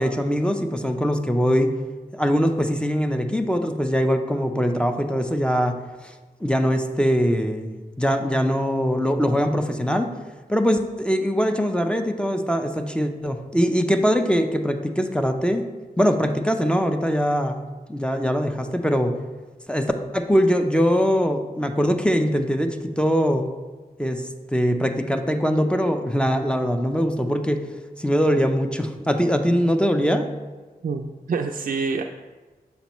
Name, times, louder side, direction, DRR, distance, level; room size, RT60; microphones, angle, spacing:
voice 1, 0.0-1.7 2.1-5.8 6.0-6.1 6.4-10.1 10.5-15.7 16.0-17.6 17.9-19.1 19.7-23.5 24.0-24.2 24.5-27.6 28.0-30.3, equal, 5° left, 6 dB, 0.6 m, -22 dB
voice 2, 30.8-32.0, right 4 dB, 60° right, 3 dB, 0.4 m, -26 dB
6.7 x 5.2 x 3.0 m, 1.3 s
cardioid pair, 45°, 16 cm